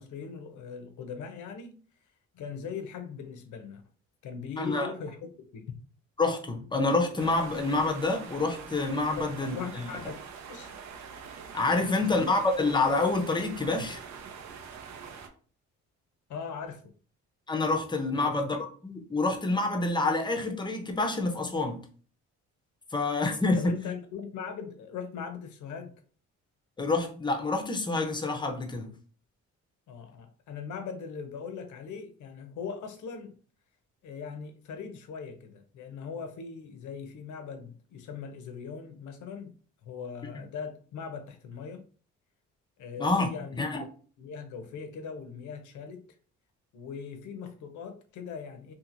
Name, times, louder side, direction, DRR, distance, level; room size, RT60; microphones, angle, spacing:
voice 1, 0.0-1.8 2.3-3.8 4.2-5.2 5.5-5.6 9.2-10.2 10.5-10.7 11.8-12.2 16.3-16.8 18.1-18.4 23.6-25.9 29.9-33.3 34.0-39.5 39.8-41.8 42.8-43.8 44.2-46.0 46.7-48.7, left 6 dB, 75° left, 0.7 m, -40 dB
voice 2, 4.6-4.9 6.2-9.8 11.5-14.0 17.5-18.6 18.8-21.8 22.9-23.8 26.8-28.9 43.0-43.3 43.6-43.8, left 3 dB, 15° left, 0.6 m, -27 dB
sound 1, 7.2-15.3, right 6 dB, 65° right, 0.6 m, -44 dB
2.8 x 2.5 x 2.5 m
cardioid pair, 90°, 30 cm